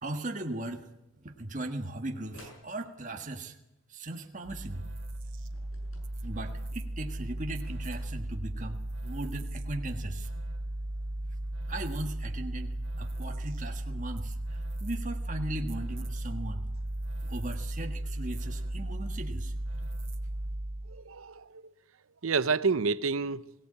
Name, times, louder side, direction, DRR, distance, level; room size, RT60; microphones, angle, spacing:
voice 1, 0.0-0.9 1.2-3.6 3.9-4.9 6.2-10.3 11.7-16.6 17.2-19.5, right 1 dB, 40° right, 1.5 m, -38 dB
sound 1, 2.3-2.6 5.5-6.1 7.6-8.4, left 1 dB, 80° left, 7.4 m, -53 dB
sound 2, 4.4-21.0, right 1 dB, 65° right, 2.0 m, -36 dB
voice 2, 20.9-21.7 22.2-23.5, right 4 dB, 85° right, 0.7 m, -29 dB
21.5 x 17.5 x 8.7 m
head